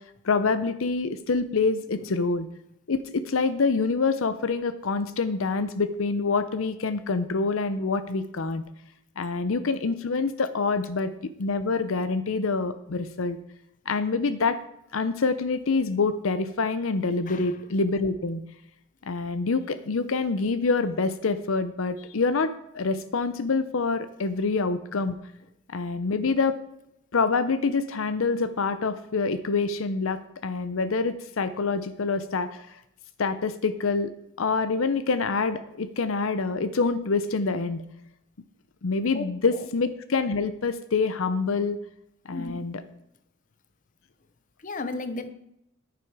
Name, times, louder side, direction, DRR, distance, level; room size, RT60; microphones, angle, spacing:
voice 1, 0.2-2.5 2.9-8.6 9.2-11.1 11.4-13.4 13.9-14.6 14.9-18.4 19.1-25.2 25.7-26.6 27.1-32.8 33.2-34.1 34.4-37.8 38.8-41.8 42.3-42.8, left 4 dB, 70° left, 12 dB, 0.6 m, -26 dB
voice 2, 17.3-17.6 39.1-39.2 39.5-39.7 42.3-42.7 44.6-45.3, left 2 dB, 40° left, 11 dB, 0.8 m, -35 dB
10.5 x 9.8 x 4.8 m, 0.80 s
head